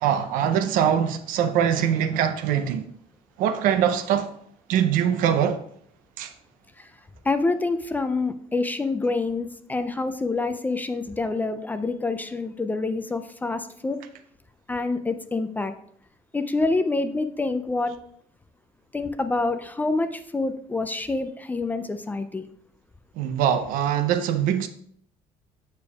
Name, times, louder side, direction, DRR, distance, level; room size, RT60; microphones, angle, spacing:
voice 1, 0.0-2.8 3.4-4.3 4.7-5.6 6.2-6.3 23.2-24.7, right 9 dB, 80° right, 0.6 m, -22 dB
voice 2, 7.3-14.0 14.7-15.7 16.3-17.9 18.9-22.5, left 3 dB, 10° left, 0.3 m, -27 dB
6.9 x 6.6 x 2.3 m
cardioid pair, 140°, 14 cm